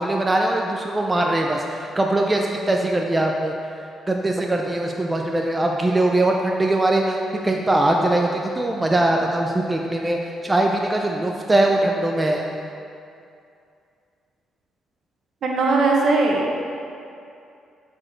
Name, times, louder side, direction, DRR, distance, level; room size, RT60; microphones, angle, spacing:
voice 1, 0.0-3.5 4.1-7.2 7.4-12.4, right 1 dB, 20° right, 1 dB, 0.4 m, -21 dB
voice 2, 15.4-16.5, right 3 dB, 60° right, -1 dB, 1.0 m, -19 dB
6.2 x 4.3 x 4.5 m, 2.5 s
cardioid pair, 90°, 0 cm